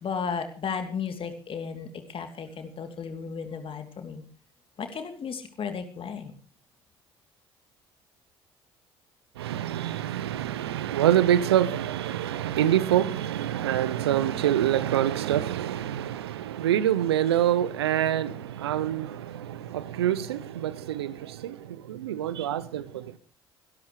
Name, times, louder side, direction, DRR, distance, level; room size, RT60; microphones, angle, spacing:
voice 1, 0.0-4.2 4.8-6.3, left 6 dB, 45° left, 3.0 m, -34 dB
voice 2, 9.4-23.2, right 11 dB, 80° right, 0.8 m, -26 dB
22.5 x 12.5 x 3.2 m
figure-of-eight pair, 55°, 13 cm